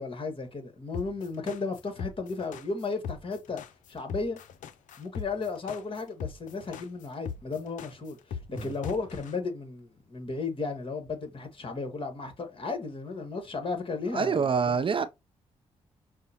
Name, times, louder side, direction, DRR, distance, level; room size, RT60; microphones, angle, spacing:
voice 1, 0.0-3.6 3.9-4.4 5.0-14.8, left 4 dB, 40° left, 1.4 m, -34 dB
sound 1, 0.9-9.3, left 7 dB, 75° left, 0.4 m, -39 dB
voice 2, 14.1-15.1, right 6 dB, 40° right, 0.5 m, -26 dB
5.5 x 2.1 x 2.8 m
supercardioid pair, 55°, 13 cm